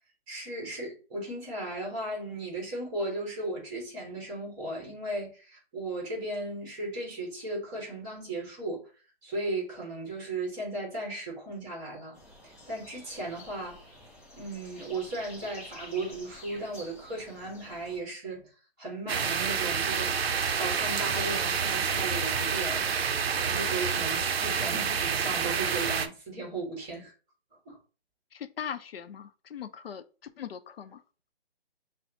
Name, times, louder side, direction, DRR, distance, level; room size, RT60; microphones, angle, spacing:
voice 1, 0.3-8.9 9.2-12.2 12.4-13.9 14.4-18.5 18.8-20.3 20.6-22.9 23.4-27.1 27.6-27.8, right 2 dB, 15° right, 1.3 m, -36 dB
sound 1, 12.1-18.0, left 1 dB, 15° left, 0.5 m, -49 dB
sound 2, 19.1-26.1, right 6 dB, 70° right, 0.5 m, -28 dB
voice 2, 28.3-31.0, left 8 dB, 65° left, 0.5 m, -40 dB
5.4 x 2.0 x 2.7 m
hypercardioid pair, 150°, 32 cm